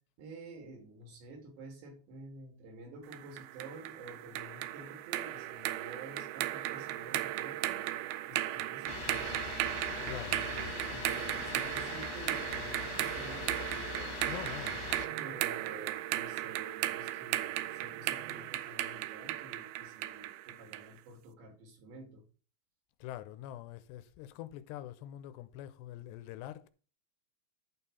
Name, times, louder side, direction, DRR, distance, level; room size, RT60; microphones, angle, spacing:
voice 1, 0.2-9.6 10.0-14.2 15.1-22.2, right 2 dB, 70° right, 5.0 m, -50 dB
sound 1, 3.1-20.9, right 15 dB, 90° right, 2.2 m, -36 dB
sound 2, 8.9-15.1, left 7 dB, 65° left, 2.9 m, -42 dB
voice 2, 10.0-10.7 14.3-14.9 23.0-26.7, left 12 dB, 80° left, 2.7 m, -45 dB
12.0 x 4.4 x 5.5 m
omnidirectional pair, 5.1 m